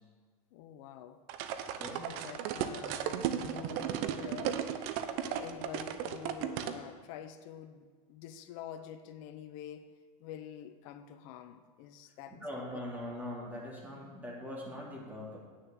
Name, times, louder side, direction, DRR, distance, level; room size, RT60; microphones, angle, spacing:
voice 1, 0.5-1.2 1.9-3.9 4.2-4.6 5.1-9.9 10.2-12.4, left 9 dB, 60° left, 9 dB, 1.0 m, -47 dB
sound 1, 1.3-6.8, right 9 dB, 55° right, 0.9 m, -35 dB
voice 2, 12.4-15.4, left 1 dB, 10° right, -4 dB, 3.4 m, -41 dB
9.3 x 6.5 x 7.9 m, 1.5 s
supercardioid pair, 120°, 19 cm